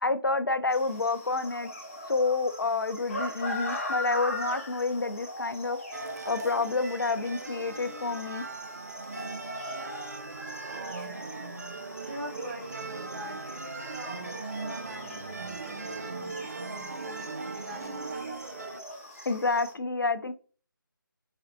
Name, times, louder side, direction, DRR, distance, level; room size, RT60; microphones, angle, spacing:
voice 1, 0.0-1.7 2.1-5.8 6.2-8.4 19.3-20.3, left 3 dB, 70° left, 11 dB, 0.4 m, -28 dB
sound 1, 0.7-19.7, left 1 dB, 40° left, 0.9 m, -41 dB
sound 2, 5.9-18.8, right 3 dB, 45° right, 0.3 m, -39 dB
voice 2, 10.7-11.4 12.0-18.3, right 1 dB, 30° right, -3 dB, 1.0 m, -43 dB
3.5 x 3.3 x 2.6 m, 0.39 s
figure-of-eight pair, 155°, 12 cm